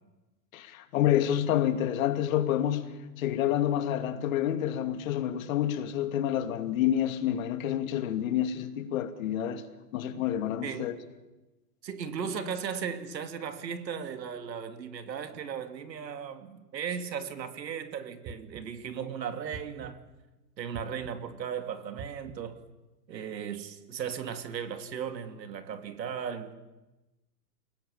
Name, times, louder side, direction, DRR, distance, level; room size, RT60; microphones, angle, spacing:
voice 1, 0.5-2.8 3.2-9.6 9.9-11.0, left 11 dB, 55° left, 2.6 m, -28 dB
voice 2, 11.8-20.0 20.6-22.7 23.1-26.5, right 7 dB, 90° right, 3.0 m, -36 dB
sound 1, 18.2-18.9 19.5-20.2 20.7-21.4 22.0-22.6, right 5 dB, 20° right, 1.3 m, -46 dB
29.5 x 18.5 x 8.8 m
hypercardioid pair, 155°, 49 cm